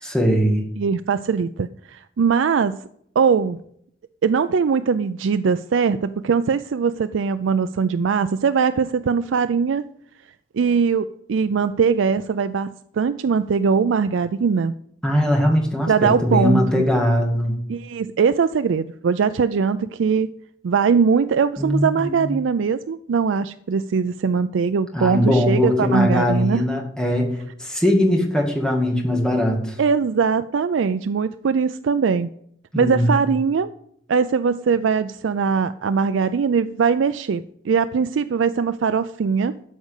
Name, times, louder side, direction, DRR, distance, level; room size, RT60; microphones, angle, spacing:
voice 1, 0.0-0.6 15.0-17.6 21.6-22.4 24.9-29.8 32.7-33.3, left 1 dB, 5° left, 0 dB, 2.1 m, -20 dB
voice 2, 0.8-2.8 3.2-3.6 4.2-9.9 10.5-14.7 15.9-16.8 17.7-20.3 20.6-26.6 29.8-32.3 32.8-33.7 34.1-39.6, right 5 dB, 75° right, 13 dB, 0.4 m, -21 dB
13.0 x 5.3 x 8.2 m, 0.70 s
head